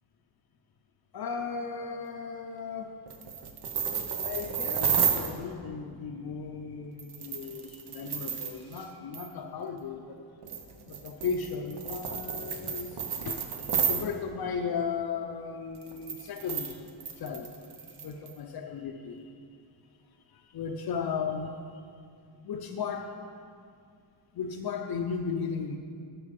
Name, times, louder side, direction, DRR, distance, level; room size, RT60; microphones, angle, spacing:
voice 1, 1.1-2.9 4.2-10.2 10.9-13.0 13.2-13.4 13.7-16.9 17.2-17.5 17.9-19.3 20.3-21.5 22.4-23.1 24.3-25.8, left 5 dB, 55° left, 3 dB, 0.6 m, -35 dB
sound 1, 3.1-5.3 7.0-8.8 9.1-9.3 10.4-14.0 15.7-18.3, right 7 dB, 55° right, 0.9 m, -31 dB
9.8 x 6.4 x 5.2 m, 2.3 s
wide cardioid pair, 140°, 46 cm